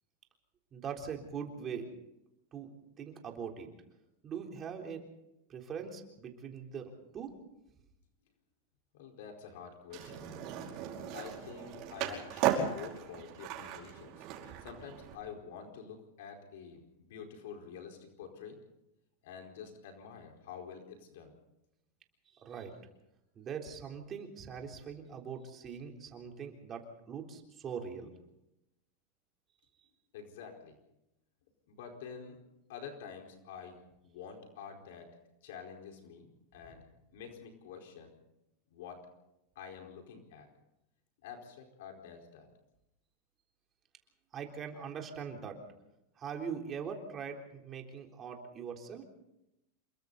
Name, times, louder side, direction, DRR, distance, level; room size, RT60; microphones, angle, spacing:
voice 1, 0.7-1.9 2.5-3.7 4.2-5.0 5.5-7.3 22.4-22.8 23.4-28.1 44.3-45.6 46.2-49.0, right 6 dB, 25° right, 2 dB, 3.8 m, -42 dB
voice 2, 8.9-10.3 11.1-14.3 14.6-18.6 19.2-21.3 30.1-30.7 31.7-32.4 32.7-35.1 35.4-36.9 37.1-38.1 38.7-39.0 39.5-40.5 41.2-42.5, left 7 dB, 70° left, 3 dB, 4.6 m, -48 dB
Skateboard, 9.9-15.1, right 9 dB, 40° right, 5.0 m, -36 dB
28.0 x 23.0 x 4.2 m, 0.86 s
supercardioid pair, 155°, 0 cm